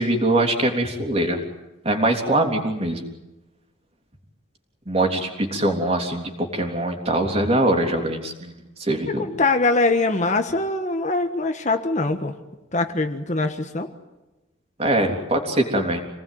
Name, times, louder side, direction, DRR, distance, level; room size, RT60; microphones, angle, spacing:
voice 1, 0.0-1.4 1.8-3.1 4.9-9.3 14.8-16.0, right 1 dB, 30° right, 3 dB, 3.5 m, -22 dB
voice 2, 9.2-12.3 12.7-13.9, left 3 dB, 35° left, 7 dB, 1.4 m, -22 dB
27.5 x 19.0 x 9.3 m, 1.0 s
head